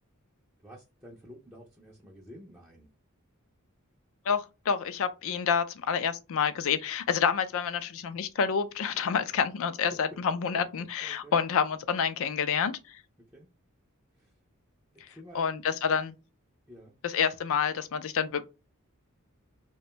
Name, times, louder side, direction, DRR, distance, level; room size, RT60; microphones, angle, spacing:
voice 1, 0.6-2.9 11.0-11.4 13.3-13.5 14.2-14.3 15.1-15.5 16.7-17.0, equal, 10° right, 0.5 m, -50 dB
voice 2, 4.3-13.0 15.3-16.1 17.0-18.4, left 6 dB, 65° left, 0.4 m, -28 dB
2.5 x 2.2 x 2.9 m
head